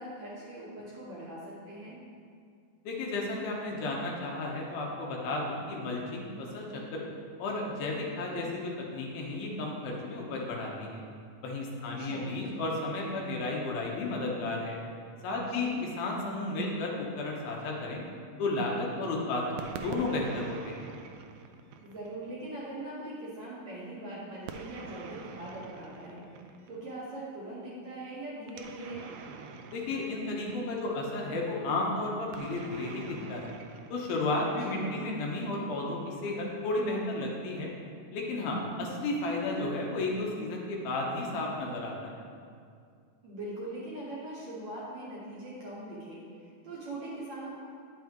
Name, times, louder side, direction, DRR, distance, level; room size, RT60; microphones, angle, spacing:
voice 1, 0.0-2.0 11.8-12.3 15.4-15.8 21.8-29.1 34.6-35.0 43.2-47.6, right 1 dB, 60° right, -7 dB, 1.9 m, -41 dB
voice 2, 2.8-7.0 7.4-11.0 11.4-14.8 15.2-15.7 16.0-18.0 18.4-20.8 29.7-33.5 33.9-37.7 38.1-42.2, left 2 dB, 80° left, -2 dB, 2.8 m, -33 dB
sound 1, 19.6-22.2 24.5-26.8 28.5-30.9 32.3-34.8, right 6 dB, 80° right, 2.1 m, -45 dB
9.4 x 6.8 x 3.0 m, 2.3 s
omnidirectional pair, 4.3 m